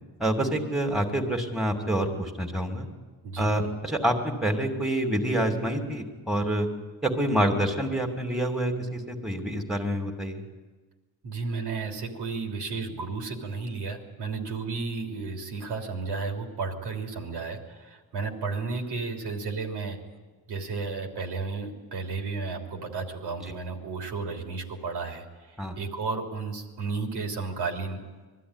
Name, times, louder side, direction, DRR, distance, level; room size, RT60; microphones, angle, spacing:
voice 1, 0.2-2.9 3.4-6.7 7.0-10.4 25.6-25.7, right 1 dB, ahead, 3 dB, 2.7 m, -27 dB
voice 2, 3.2-3.7 11.2-20.0 20.5-28.0, right 4 dB, 70° right, 2 dB, 3.4 m, -33 dB
20.5 x 13.5 x 9.9 m, 1.3 s
cardioid pair, 85°, 42 cm